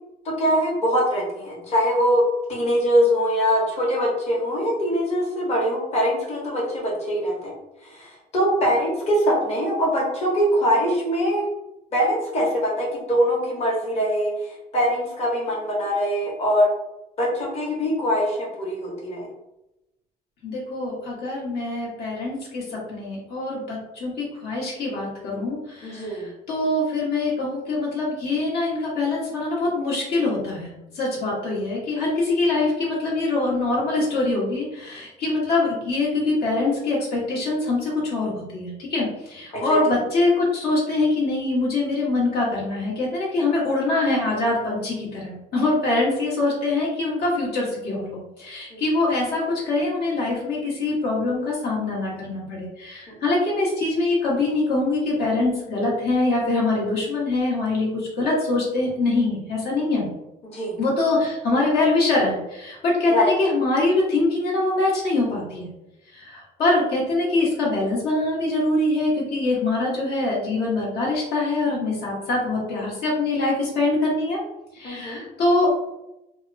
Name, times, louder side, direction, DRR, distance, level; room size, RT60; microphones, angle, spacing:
voice 1, 0.2-2.2 2.5-7.5 7.8-11.5 11.9-16.7 17.2-19.2 25.8-26.3 39.5-39.8 45.9-46.0 48.7-48.8 60.4-60.8 63.1-63.3 74.8-75.2, equal, 40° left, -5 dB, 0.9 m, -23 dB
voice 2, 20.4-60.1 60.8-65.7 66.1-74.4 74.7-75.7, left 2 dB, 70° left, -4 dB, 1.0 m, -24 dB
2.8 x 2.0 x 2.5 m, 0.91 s
cardioid pair, 110°, 17 cm